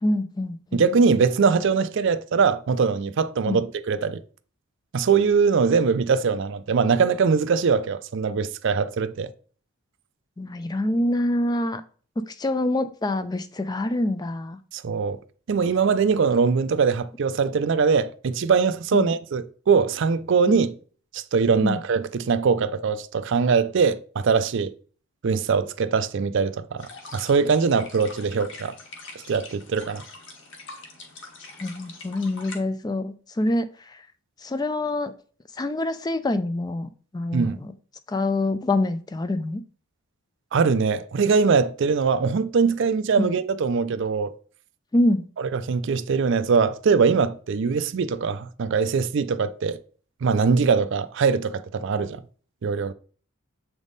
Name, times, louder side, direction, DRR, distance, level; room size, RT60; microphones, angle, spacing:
voice 1, 0.0-0.9 3.5-3.6 10.4-11.8 12.3-14.6 18.9-19.1 20.5-20.6 21.6-21.8 31.6-34.0 34.4-35.1 35.5-37.7 38.1-39.6 43.2-43.3 44.9-45.3, left 1 dB, 20° left, 0.3 m, -26 dB
voice 2, 0.7-4.2 4.9-9.3 14.7-15.2 15.5-20.7 21.1-24.7 25.2-28.7 29.3-30.0 37.3-37.6 40.5-44.3 45.4-49.8 50.2-52.2 52.6-52.9, right 5 dB, 55° right, 0.4 m, -22 dB
sound 1, 26.8-32.6, left 3 dB, 55° left, 1.3 m, -43 dB
7.2 x 3.5 x 3.9 m
head